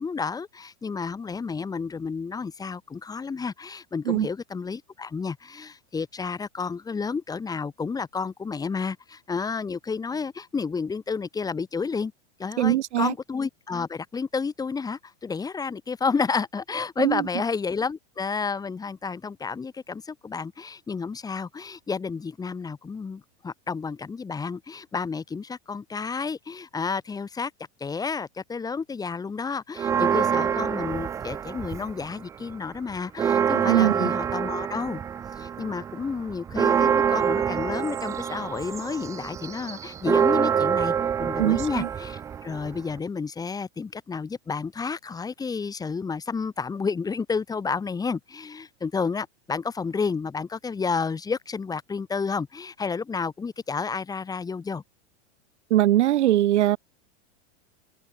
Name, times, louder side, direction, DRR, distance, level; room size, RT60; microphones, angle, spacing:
voice 1, 0.0-12.1 12.4-27.5 27.8-35.0 35.4-54.8, left 5 dB, 10° left, 4.4 m, -31 dB
voice 2, 12.6-13.1 17.0-17.2 33.7-34.1 41.4-41.9 55.7-56.8, right 13 dB, 80° right, 3.9 m, -21 dB
Church bell, 29.8-32.1 32.5-32.6 32.9-43.0, right 8 dB, 10° right, 0.4 m, -26 dB
open air
supercardioid pair, 160°, 34 cm